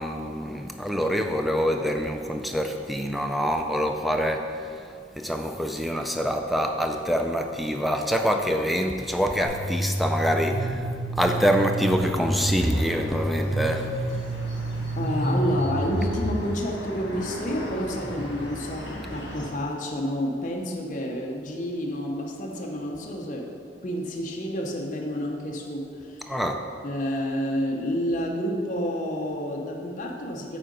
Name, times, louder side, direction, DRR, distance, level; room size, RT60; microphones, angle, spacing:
voice 1, 0.0-14.2 26.3-26.6, equal, ahead, 4 dB, 0.3 m, -26 dB
sound 1, 9.4-16.3, right 1 dB, 35° right, 1.2 m, -28 dB
sound 2, 12.6-19.5, equal, 70° left, 1.5 m, -38 dB
voice 2, 14.9-23.5 23.8-26.3 26.8-30.6, equal, 40° left, -1 dB, 0.7 m, -29 dB
8.6 x 3.7 x 5.2 m, 2.4 s
head